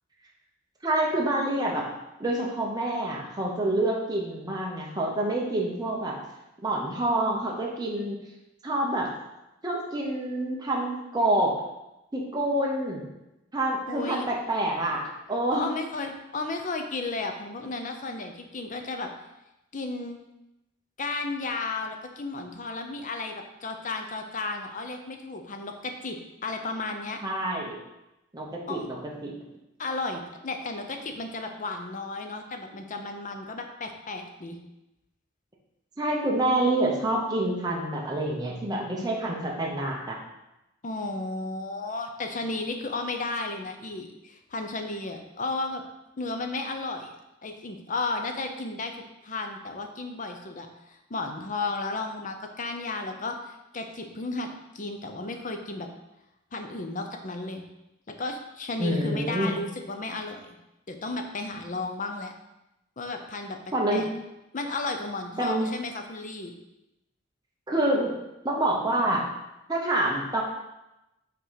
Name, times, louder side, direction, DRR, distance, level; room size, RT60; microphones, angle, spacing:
voice 1, 0.8-1.9 2.2-6.2 6.6-8.2 8.6-9.1 9.6-11.5 12.1-13.1 13.5-15.7 27.2-27.8 28.3-29.4 36.0-40.2 58.8-59.6 63.7-64.0 65.4-65.7 67.7-68.1 68.4-69.3 69.7-70.4, right 1 dB, 20° right, -2 dB, 0.9 m, -27 dB
voice 2, 13.9-14.3 15.5-19.1 19.7-20.2 21.0-27.2 28.7-28.9 29.8-34.6 40.8-45.8 46.2-49.0 49.2-54.5 54.7-55.9 56.5-57.6 58.1-60.5 60.9-62.3 63.0-63.6 63.9-64.1 64.5-66.5, left 3 dB, 40° left, 5 dB, 0.7 m, -33 dB
5.5 x 3.8 x 5.7 m, 0.93 s
head